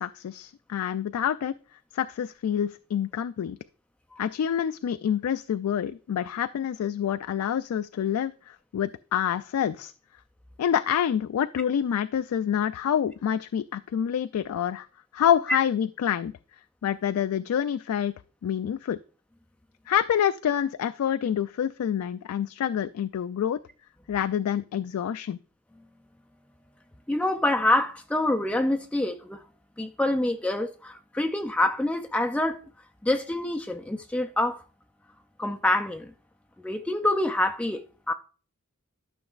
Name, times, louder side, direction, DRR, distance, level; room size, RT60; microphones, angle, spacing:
voice 1, 0.0-1.5 1.9-3.6 4.2-9.9 10.6-14.9 15.1-16.3 16.8-18.1 18.4-19.0 19.9-23.6 24.1-25.4, left 9 dB, 85° left, 0.3 m, -27 dB
voice 2, 27.1-29.4 29.8-32.6 33.0-34.6 35.4-36.1 36.6-38.1, left 1 dB, 5° left, 0.3 m, -26 dB
12.5 x 6.2 x 2.4 m
head